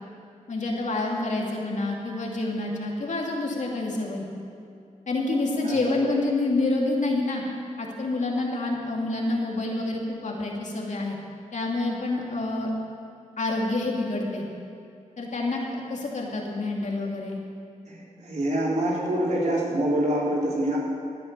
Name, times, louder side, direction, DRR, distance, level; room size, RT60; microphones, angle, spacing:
voice 1, 0.5-4.2 5.1-7.4 7.8-11.2 11.5-12.7 13.4-14.4 15.2-15.6 15.9-17.4, left 2 dB, 60° left, -1 dB, 2.7 m, -27 dB
voice 2, 5.6-6.0 17.9-20.8, right 1 dB, 60° right, -5 dB, 4.1 m, -26 dB
15.0 x 9.3 x 6.8 m, 2.5 s
cardioid pair, 60°, 14 cm